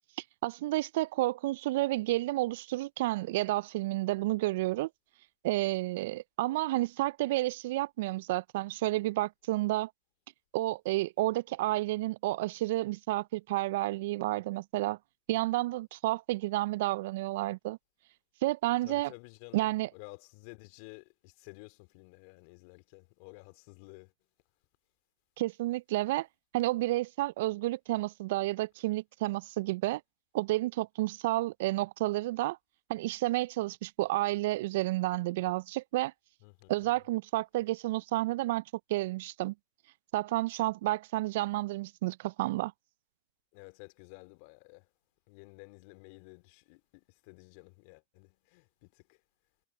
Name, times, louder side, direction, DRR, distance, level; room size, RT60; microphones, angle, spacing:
voice 1, 0.4-4.9 5.4-9.9 10.5-15.0 15.3-17.8 18.4-19.1 19.5-19.9 25.4-26.3 26.5-30.0 30.3-32.6 32.9-36.1 36.7-38.6 38.9-39.5 40.1-42.7, right 18 dB, 60° right, 0.4 m, -30 dB
voice 2, 18.8-24.1 36.4-36.9 43.5-44.9 45.3-49.2, left 30 dB, 55° left, 2.4 m, -52 dB
hypercardioid pair, 100°, 0 cm